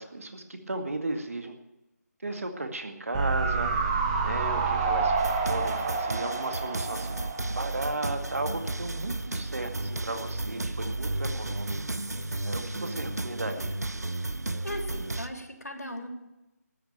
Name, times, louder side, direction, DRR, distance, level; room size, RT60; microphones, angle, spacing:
voice 1, 0.0-1.6 2.2-3.9 4.2-5.1 5.5-7.2 7.5-11.7 12.5-13.8, right 2 dB, 55° right, 6 dB, 2.0 m, -35 dB
sound 1, 3.1-8.4 8.7-8.8, right 4 dB, 20° right, 1.5 m, -29 dB
sound 2, 5.2-15.3, right 2 dB, 70° right, 0.8 m, -33 dB
voice 2, 12.5-12.9 14.5-16.1, left 1 dB, 75° left, 3 dB, 3.3 m, -39 dB
13.0 x 8.8 x 8.9 m, 0.96 s
figure-of-eight pair, 155°, 9 cm